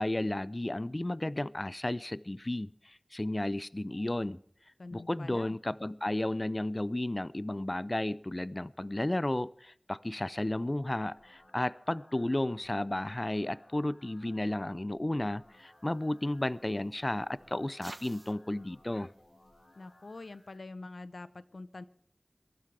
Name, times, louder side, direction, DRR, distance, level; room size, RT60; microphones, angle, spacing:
voice 1, 0.0-4.4 4.9-19.1, left 1 dB, 35° left, 18 dB, 0.5 m, -33 dB
voice 2, 4.8-5.5 19.8-21.8, left 3 dB, 85° left, 14 dB, 0.8 m, -45 dB
sound 1, 10.6-20.6, left 1 dB, 50° left, 4.7 m, -62 dB
sound 2, 15.5-20.6, right 2 dB, 45° right, 1.1 m, -56 dB
22.5 x 12.5 x 3.4 m, 0.64 s
wide cardioid pair, 50°, 0 cm